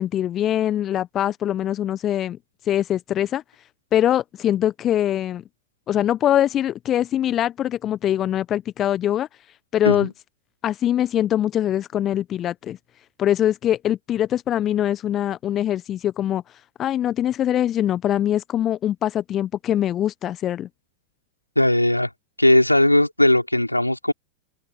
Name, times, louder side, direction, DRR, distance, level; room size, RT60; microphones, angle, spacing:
voice 1, 0.0-2.4 2.7-3.4 3.9-5.4 5.9-9.3 9.7-10.1 10.6-12.8 13.2-16.4 16.8-20.7, left 11 dB, 30° left, 1.2 m, -23 dB
voice 2, 21.6-22.1 22.4-24.1, left 1 dB, 85° left, 4.5 m, -18 dB
open air
figure-of-eight pair, 90°, 0 cm